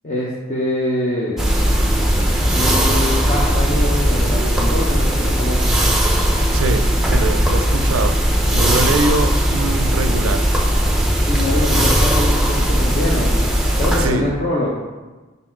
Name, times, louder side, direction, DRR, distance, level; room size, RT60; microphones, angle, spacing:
voice 1, 0.0-1.4 2.5-5.7 11.3-13.5 13.8-14.7, left 1 dB, 35° left, -5 dB, 0.7 m, -24 dB
sound 1, 1.4-14.1, equal, ahead, 0.6 m, -17 dB
voice 2, 6.5-8.2 8.5-10.4 14.0-14.3, right 3 dB, 85° right, 9 dB, 0.4 m, -23 dB
5.3 x 4.1 x 4.4 m, 1.2 s
head